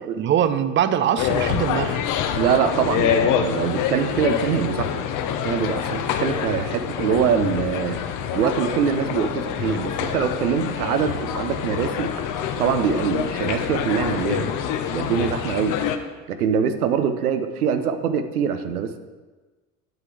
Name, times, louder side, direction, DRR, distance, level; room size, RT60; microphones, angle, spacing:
voice 1, 0.1-2.0 9.6-9.8, right 9 dB, 25° right, 12 dB, 0.5 m, -22 dB
sound 1, 1.2-16.0, left 8 dB, 45° left, 0.8 m, -26 dB
voice 2, 2.3-5.0 5.4-8.0 8.3-12.1 12.6-14.5 14.9-15.8 16.3-19.0, right 7 dB, 75° right, 9 dB, 0.8 m, -23 dB
8.3 x 8.3 x 3.4 m, 1.3 s
hypercardioid pair, 75°, 44 cm